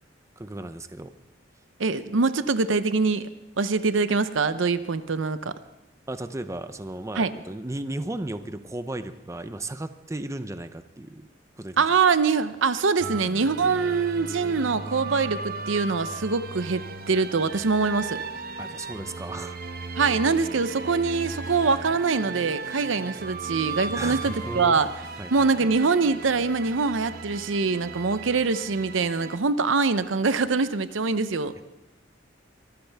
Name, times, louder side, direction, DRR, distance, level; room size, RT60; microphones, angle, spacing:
voice 1, 0.4-1.1 6.1-11.3 11.6-11.8 18.6-19.6 23.9-24.8 25.2-25.7 31.6-31.7, right 1 dB, 15° right, 10 dB, 0.6 m, -35 dB
voice 2, 1.8-3.3 3.6-5.5 7.2-7.3 11.8-18.2 20.0-24.9 25.3-31.5, right 4 dB, 90° right, 13 dB, 0.7 m, -24 dB
sound 1, 13.0-29.4, right 4 dB, 50° right, 1.0 m, -36 dB
Snare drum, 21.1-21.8 22.3-23.0 23.5-25.4, left 2 dB, 60° left, 6.0 m, -56 dB
23.5 x 13.5 x 3.5 m, 1.0 s
head